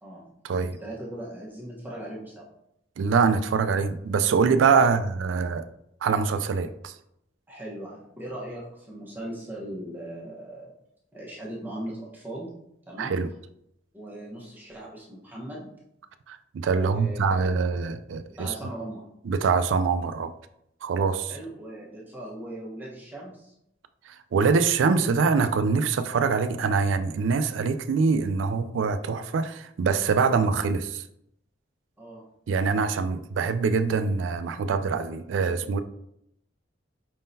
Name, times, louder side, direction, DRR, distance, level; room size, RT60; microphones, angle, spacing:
voice 1, 0.6-2.5 4.8-5.0 7.5-10.7 11.1-12.5 12.9-13.2 13.9-15.7 16.7-17.6 18.4-19.0 21.3-23.5 32.0-32.2 33.1-33.2, right 1 dB, 10° right, -5 dB, 1.0 m, -39 dB
voice 2, 3.0-5.6 6.0-6.9 13.0-13.3 16.3-18.5 19.3-20.3 20.8-21.3 24.1-31.0 32.5-35.8, right 5 dB, 85° right, 11 dB, 0.3 m, -24 dB
5.2 x 3.7 x 2.7 m, 0.77 s
head